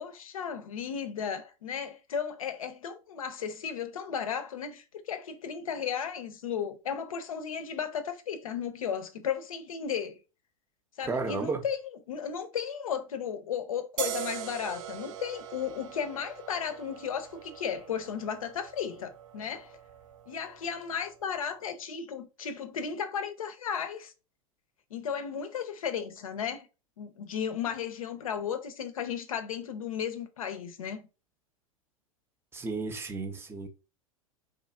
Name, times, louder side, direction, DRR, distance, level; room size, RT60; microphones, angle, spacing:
voice 1, 0.0-10.2 11.0-11.8 12.1-19.7 20.3-24.1 24.9-26.7 27.0-31.0, left 7 dB, 70° left, 0.5 m, -35 dB
voice 2, 11.0-11.6 32.5-33.7, right 4 dB, 15° right, 0.6 m, -33 dB
sound 1, 14.0-21.3, right 10 dB, 60° right, 0.5 m, -42 dB
2.9 x 2.4 x 2.3 m
figure-of-eight pair, 90°, 18 cm